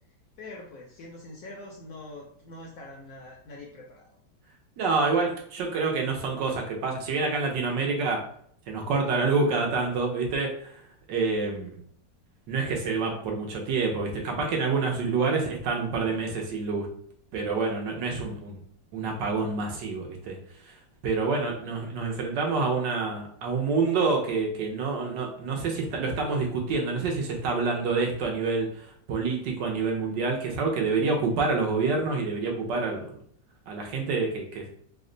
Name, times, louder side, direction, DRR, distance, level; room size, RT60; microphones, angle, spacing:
voice 1, 0.4-4.1, left 2 dB, 70° left, -1 dB, 0.8 m, -44 dB
voice 2, 4.8-8.2 8.7-10.7 11.1-11.8 12.5-16.9 17.3-18.6 18.9-20.4 21.0-28.7 29.1-33.0 33.7-34.7, right 4 dB, 75° right, 1 dB, 1.4 m, -27 dB
3.4 x 2.1 x 3.8 m, 0.64 s
omnidirectional pair, 2.0 m